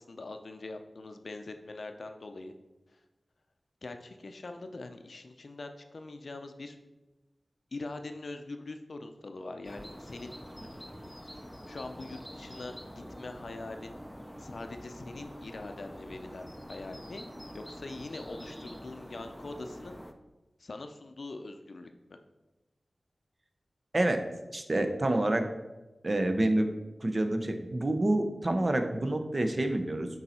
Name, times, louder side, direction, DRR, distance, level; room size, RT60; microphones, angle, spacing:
voice 1, 0.0-2.5 3.8-6.8 7.7-10.4 11.7-14.0 14.4-17.3 17.5-20.0 20.6-22.2, left 2 dB, 65° left, 6 dB, 0.5 m, -43 dB
sound 1, 9.6-20.1, equal, 5° left, 0.5 m, -46 dB
voice 2, 24.5-25.5 26.0-26.7 27.0-30.1, right 1 dB, 40° right, 6 dB, 0.6 m, -27 dB
6.8 x 4.1 x 4.2 m, 1.1 s
wide cardioid pair, 85°, 0 cm